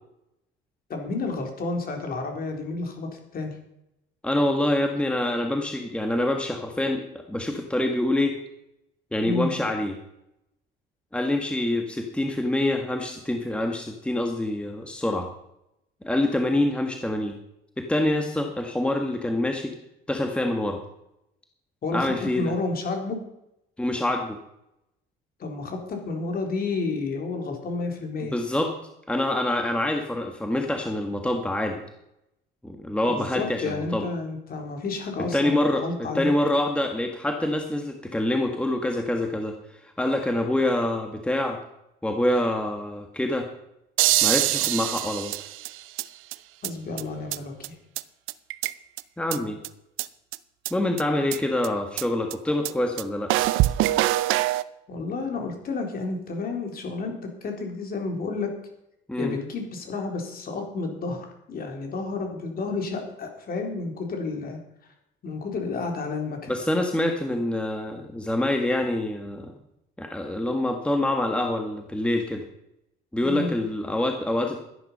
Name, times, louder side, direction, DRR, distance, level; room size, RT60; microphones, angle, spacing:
voice 1, 0.9-3.5 9.2-9.5 21.8-23.2 25.4-28.3 33.1-36.3 46.6-47.8 54.9-57.1 57.4-58.5 59.2-64.6 65.2-66.5 73.2-73.5, left 3 dB, 45° left, 3 dB, 3.8 m, -31 dB
voice 2, 4.2-8.3 9.1-10.0 11.1-15.3 16.0-17.4 17.8-19.7 20.1-20.8 21.9-22.5 23.8-24.4 28.3-28.7 29.1-31.8 32.6-34.0 35.3-41.6 42.0-43.5 44.2-45.3 49.2-49.6 50.7-53.3 59.1-59.3 66.5-69.6 70.0-72.4 73.1-74.6, left 1 dB, 5° left, 4 dB, 1.5 m, -26 dB
sound 1, 44.0-46.0 46.3-46.4 46.6-46.7 47.0-47.1 47.3-47.4 47.6-47.7 48.0-48.1 48.3-49.0 49.3-49.4 49.6-49.7 50.0-50.1 50.3-50.4 50.7-50.8 51.0-51.1 51.3-51.4 51.6-51.7 52.0-52.1 52.3-52.4 52.6-52.7 53.0-53.1 53.3-54.6, right 16 dB, 80° right, 0.6 m, -24 dB
12.5 x 10.5 x 5.6 m, 0.82 s
cardioid pair, 105°, 21 cm